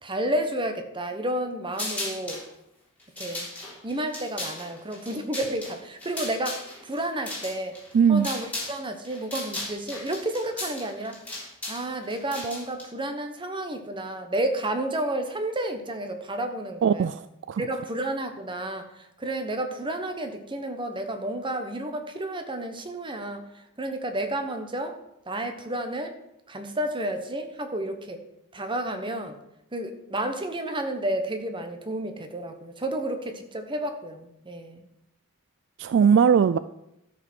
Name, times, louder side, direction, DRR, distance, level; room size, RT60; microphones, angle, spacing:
voice 1, 0.0-2.4 3.2-3.5 3.8-7.8 8.1-11.2 11.7-17.1 17.6-18.9 19.2-25.0 25.3-26.1 26.5-28.2 28.5-29.4 29.7-34.8, right 1 dB, 25° right, 6 dB, 1.1 m, -31 dB
sound 1, 1.7-2.5 3.0-8.8 9.0-12.8, left 2 dB, 5° left, 3.5 m, -36 dB
voice 2, 7.9-8.3 16.8-17.6 35.8-36.6, right 7 dB, 55° right, 14 dB, 0.3 m, -20 dB
13.0 x 5.1 x 6.2 m, 0.83 s
head